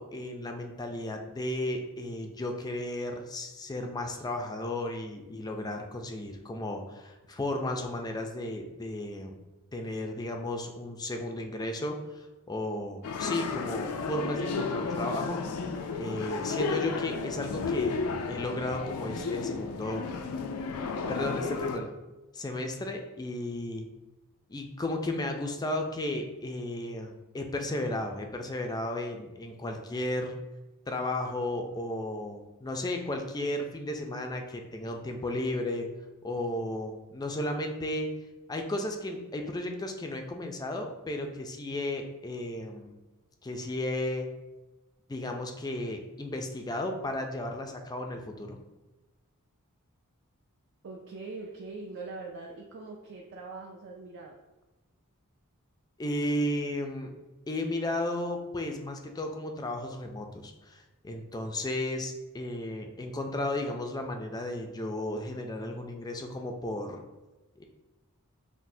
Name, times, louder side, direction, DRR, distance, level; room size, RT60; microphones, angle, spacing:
voice 1, 0.0-9.4 9.7-15.4 16.0-18.0 18.3-20.0 21.1-21.9 22.3-23.9 24.5-30.4 30.9-35.9 36.2-38.1 38.5-43.0 43.4-44.3 45.1-48.6 56.0-57.1 57.5-67.0 67.6-67.7, left 1 dB, 20° left, 3 dB, 0.4 m, -34 dB
sound 1, 13.0-21.8, left 4 dB, 85° left, 0.4 m, -33 dB
voice 2, 50.8-54.4, right 3 dB, 55° right, -1 dB, 0.4 m, -42 dB
5.9 x 2.1 x 2.6 m, 1.1 s
head